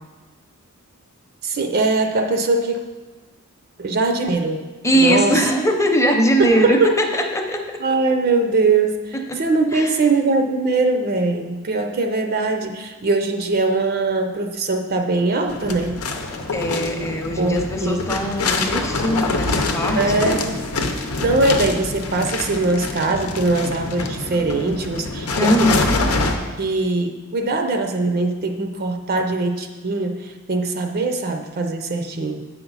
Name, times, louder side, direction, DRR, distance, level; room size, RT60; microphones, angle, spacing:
voice 1, 1.4-2.8 3.8-4.6 4.9-5.5 6.4-6.9 7.8-16.0 17.4-18.0 19.9-20.7 21.2-25.8 26.6-32.4, right 3 dB, 45° right, 5 dB, 0.5 m, -21 dB
voice 2, 4.8-7.6 9.3-9.4 9.7-9.9 16.5-20.4 25.3-26.0, equal, 15° left, 2 dB, 0.7 m, -20 dB
sound 1, 15.5-26.4, left 3 dB, 90° left, 0.8 m, -25 dB
8.4 x 5.8 x 4.0 m, 1.3 s
head